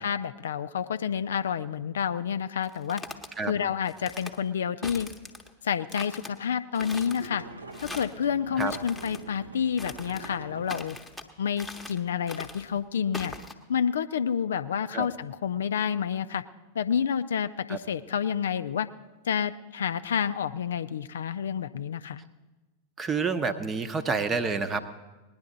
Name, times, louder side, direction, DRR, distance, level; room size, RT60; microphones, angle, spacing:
voice 1, 0.0-3.0 3.4-5.1 5.6-7.4 7.8-11.0 11.4-13.3 13.7-16.4 16.7-18.9 19.2-22.2, left 8 dB, 65° left, 12 dB, 0.4 m, -29 dB
sound 1, 2.6-3.3 3.9-4.4 4.8-5.5 5.9-6.3 6.7-7.3 7.7-8.2 8.6-9.2 9.8-10.3 10.7-11.3 11.6-12.0 12.3-12.7 13.1-13.5, left 2 dB, 5° left, 1.0 m, -41 dB
sound 2, 6.8-10.8, right 3 dB, 75° right, 0.8 m, -44 dB
voice 2, 23.0-24.8, right 4 dB, 20° right, 11 dB, 0.8 m, -28 dB
19.0 x 10.5 x 3.9 m, 1.2 s
figure-of-eight pair, 90°, 0 cm